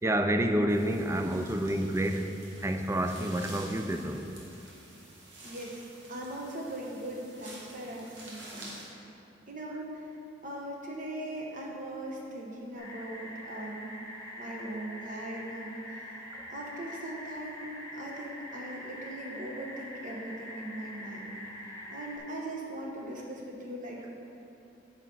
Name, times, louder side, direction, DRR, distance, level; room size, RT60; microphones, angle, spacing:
voice 1, 0.0-2.3 2.6-4.3, right 1 dB, 15° right, 6 dB, 0.4 m, -28 dB
sound 1, 0.7-8.9, right 1 dB, 85° right, 1.7 m, -49 dB
voice 2, 5.4-5.8 6.1-8.7 9.5-10.0 10.4-13.9 14.4-16.1 16.5-17.7 17.9-21.3 21.9-24.2, right 1 dB, 45° right, -2 dB, 1.2 m, -40 dB
sound 2, 12.8-22.2, equal, 20° left, 1.1 m, -44 dB
8.9 x 5.9 x 3.9 m, 3.0 s
head